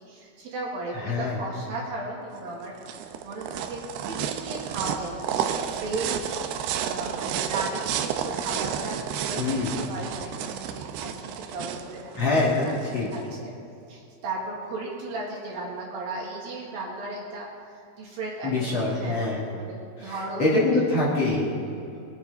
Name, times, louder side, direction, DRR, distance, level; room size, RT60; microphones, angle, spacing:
voice 1, 0.0-12.1 12.5-12.7 13.1-13.5 13.9-20.5 20.7-20.8 21.6-22.1, right 2 dB, 60° right, -3 dB, 3.3 m, -36 dB
voice 2, 0.9-1.4 9.4-9.7 12.2-12.6 12.9-13.1 18.4-19.5 20.0-21.5, left 2 dB, 45° left, -6 dB, 2.8 m, -24 dB
sound 1, 2.4-13.2, right 8 dB, 80° right, 2.5 m, -31 dB
22.0 x 9.5 x 4.0 m, 2.6 s
omnidirectional pair, 5.0 m